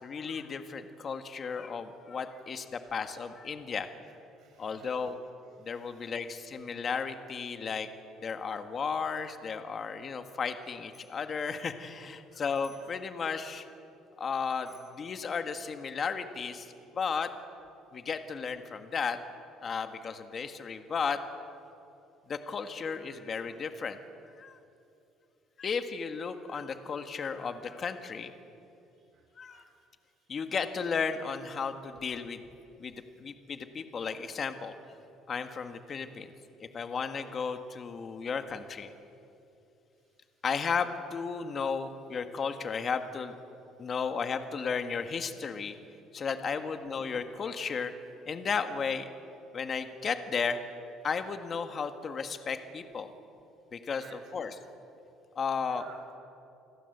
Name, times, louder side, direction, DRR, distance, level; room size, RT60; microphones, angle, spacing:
voice 1, 0.0-3.9 4.6-5.2 5.6-7.9 8.2-13.7 14.2-16.7 16.9-17.3 17.9-19.2 19.6-21.2 22.3-24.0 24.4-24.6 25.6-28.3 29.4-29.6 30.3-32.4 32.8-32.9 33.2-34.7 35.3-36.3 36.6-38.9 40.4-43.3 43.8-45.7 46.1-47.9 48.3-49.1 49.5-50.6 51.0-53.1 53.7-54.5 55.3-55.8, left 5 dB, 30° left, 7 dB, 1.7 m, -34 dB
voice 2, 4.1-5.1 5.6-6.1 12.3-12.9 29.0-29.2 29.5-29.7 46.5-46.7 53.9-54.2 55.7-56.2, right 6 dB, 55° right, 2 dB, 7.3 m, -56 dB
Bicycle bell, 10.6-11.3 12.5-13.0 14.3-15.1, left 1 dB, 10° left, 7.0 m, -62 dB
29.0 x 20.5 x 8.1 m, 2.7 s
cardioid pair, 145°, 0 cm